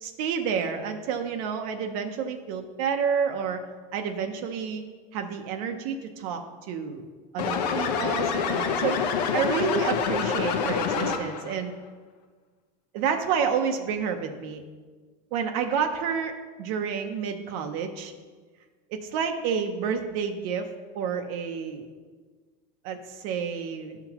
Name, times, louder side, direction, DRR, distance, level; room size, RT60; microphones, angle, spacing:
voice 1, 0.0-3.6 3.9-4.8 5.1-7.1 7.3-9.0 9.3-11.7 12.9-14.6 15.3-18.1 18.9-20.7 20.9-21.9 22.8-24.0, right 6 dB, 60° right, 5 dB, 0.7 m, -29 dB
sound 1, 7.4-11.5, left 6 dB, 80° left, 0.9 m, -26 dB
12.5 x 5.9 x 2.9 m, 1.5 s
supercardioid pair, 150°, 21 cm